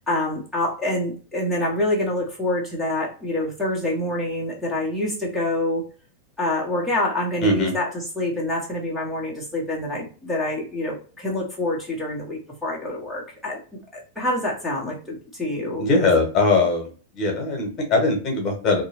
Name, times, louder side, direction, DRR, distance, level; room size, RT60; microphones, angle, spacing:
voice 1, 0.1-5.8 6.4-13.6 13.9-16.1, left 1 dB, ahead, -6 dB, 1.3 m, -26 dB
voice 2, 7.4-7.7 15.8-16.9 17.1-18.8, left 3 dB, 35° left, 2 dB, 1.5 m, -20 dB
3.7 x 3.0 x 2.8 m, 0.38 s
figure-of-eight pair, 90°, 0 cm